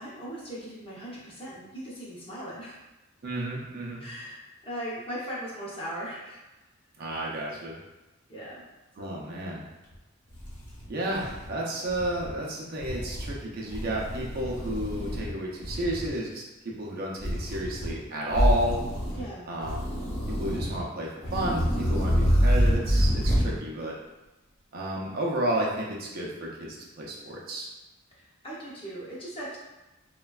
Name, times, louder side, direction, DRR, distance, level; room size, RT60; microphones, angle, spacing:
voice 1, 0.0-2.8 4.0-6.4 8.3-8.6 9.0-9.1 19.1-19.5 28.1-29.6, equal, 25° left, -7 dB, 0.7 m, -39 dB
voice 2, 3.2-4.1 7.0-7.8 9.0-9.6 10.9-18.8 19.5-19.9 20.4-24.0 24.7-27.7, right 1 dB, 50° right, -3 dB, 0.5 m, -32 dB
sound 1, 9.9-10.0 10.3-11.5 11.9-12.3 12.8-13.3 13.7-15.3 15.6-16.1 17.2-17.9 18.3-19.2 19.6-20.8 21.2-23.5, equal, 55° left, 0.9 m, -27 dB
3.1 x 2.2 x 2.3 m, 1.0 s
head